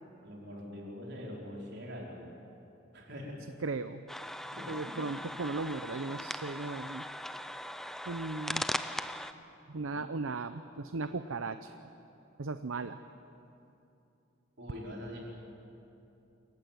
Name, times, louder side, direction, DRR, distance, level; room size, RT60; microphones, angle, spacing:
voice 1, 0.2-2.3 2.9-3.5 4.5-5.1 14.6-15.2, left 1 dB, 55° right, -2 dB, 4.8 m, -44 dB
voice 2, 3.6-4.0 4.7-7.0 8.1-8.6 9.7-11.7 12.4-13.0, right 3 dB, 80° right, 11 dB, 0.7 m, -36 dB
sound 1, 4.1-9.3, equal, ahead, 0.6 m, -39 dB
27.5 x 15.0 x 9.3 m, 2.8 s
head